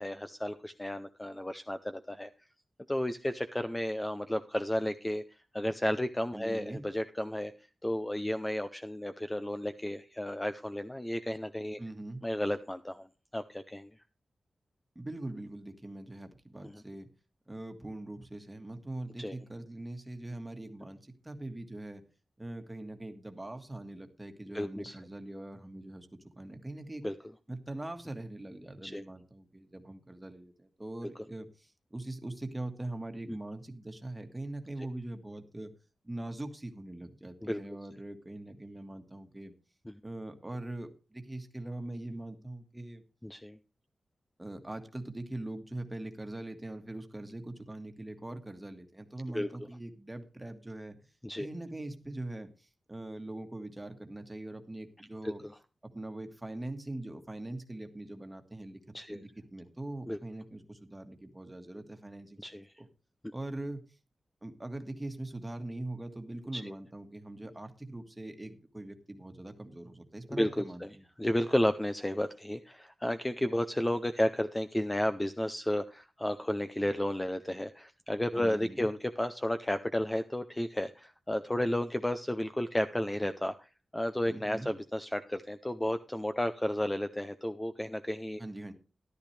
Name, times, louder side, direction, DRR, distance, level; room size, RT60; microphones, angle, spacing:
voice 1, 0.0-2.3 2.9-5.2 5.5-7.5 7.8-11.8 12.2-13.1 13.3-13.9 16.6-16.8 19.2-19.3 24.5-25.0 27.0-27.1 28.8-29.0 33.3-33.4 37.4-37.6 39.9-40.0 43.2-43.6 49.3-49.5 51.2-51.5 55.2-55.5 58.9-59.2 60.1-60.2 62.4-62.7 66.5-66.7 70.3-70.9 71.2-88.4, left 1 dB, 10° left, 9 dB, 0.5 m, -32 dB
voice 2, 6.3-6.8 11.8-12.2 14.9-17.1 17.5-22.0 22.4-26.1 26.3-27.0 27.5-35.7 36.0-39.5 40.0-43.0 44.4-51.0 51.4-55.4 55.8-62.9 63.3-63.8 64.4-71.0 78.3-78.9 84.3-84.7 88.4-88.7, right 1 dB, 15° right, 6 dB, 1.7 m, -42 dB
13.5 x 12.0 x 3.3 m, 0.31 s
wide cardioid pair, 115°, 0 cm